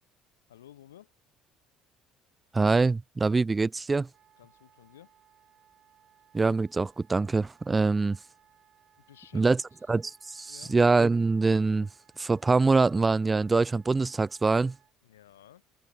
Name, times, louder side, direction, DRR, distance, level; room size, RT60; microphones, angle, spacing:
voice 1, 0.5-1.1 4.4-5.1 9.0-9.8 10.5-10.8 15.0-15.7, left 12 dB, 75° left, 3.6 m, -54 dB
voice 2, 2.5-4.1 6.3-8.2 9.3-9.6 9.9-11.9 12.2-14.7, right 3 dB, 20° right, 0.3 m, -24 dB
Wind instrument woodwind instrument, 4.1-14.9, right 9 dB, 45° right, 6.7 m, -64 dB
figure-of-eight pair, 60°, 0 cm